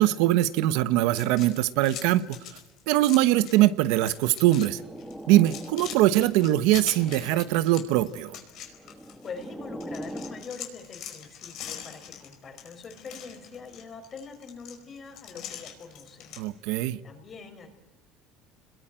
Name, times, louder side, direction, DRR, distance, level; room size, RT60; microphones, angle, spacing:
voice 1, 0.0-2.4 2.9-4.8 5.3-8.4 16.4-17.0, right 15 dB, 80° right, 14 dB, 1.0 m, -22 dB
sound 1, 1.1-3.6 3.9-4.7 5.0-9.4 9.8-16.4, left 9 dB, 60° left, 4.8 m, -43 dB
sound 2, 4.4-6.2 6.6-7.7 8.6-10.5, equal, 5° right, 1.8 m, -42 dB
voice 2, 9.2-16.3 17.0-17.7, left 5 dB, 30° left, 6 dB, 4.8 m, -43 dB
29.0 x 21.5 x 9.1 m, 1.0 s
cardioid pair, 145°, 0 cm